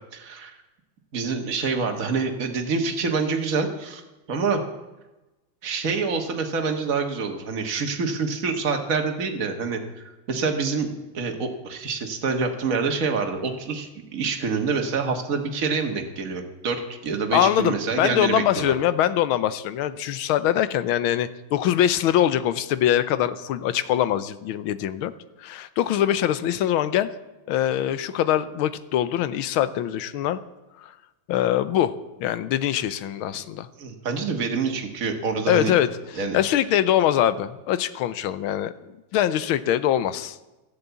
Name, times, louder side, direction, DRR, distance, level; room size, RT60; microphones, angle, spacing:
voice 1, 0.1-0.5 1.1-4.0 4.3-4.6 5.6-18.8 33.8-35.7 36.2-36.4, right 4 dB, 45° right, 3 dB, 1.8 m, -26 dB
voice 2, 17.3-25.1 25.4-27.1 27.5-30.4 30.8-30.9 31.3-31.9 32.2-33.7 35.5-38.7 39.1-40.4, left 11 dB, 85° left, 14 dB, 1.6 m, -23 dB
13.5 x 11.0 x 8.2 m, 1.1 s
omnidirectional pair, 2.3 m